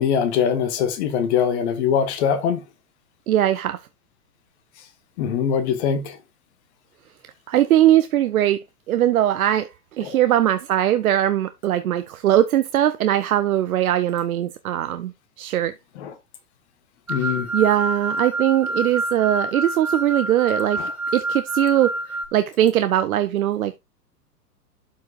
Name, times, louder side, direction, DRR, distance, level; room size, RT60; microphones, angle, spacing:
voice 1, 0.0-2.6 5.2-6.2 10.0-10.2 16.0-16.1 17.1-17.5 20.8-20.9, left 7 dB, 45° left, 1.5 m, -22 dB
voice 2, 3.3-3.8 7.5-9.7 10.0-15.1 15.4-15.7 17.2-20.8 21.1-23.8, right 12 dB, 60° right, 0.8 m, -20 dB
sound 1, 17.1-22.3, right 2 dB, 5° right, 0.5 m, -27 dB
12.0 x 4.8 x 2.5 m
figure-of-eight pair, 110°, 48 cm